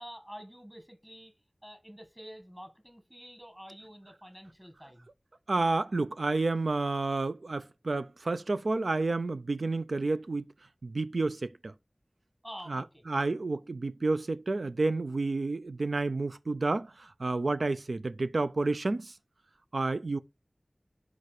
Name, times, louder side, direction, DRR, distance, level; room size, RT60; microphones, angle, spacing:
voice 1, 0.0-1.3 1.6-5.1 12.4-13.0, equal, 15° right, 1.5 m, -48 dB
voice 2, 5.5-10.4 10.8-11.7 12.7-19.1 19.7-20.2, right 3 dB, 85° right, 0.4 m, -30 dB
4.8 x 4.2 x 4.9 m
wide cardioid pair, 45°, 0 cm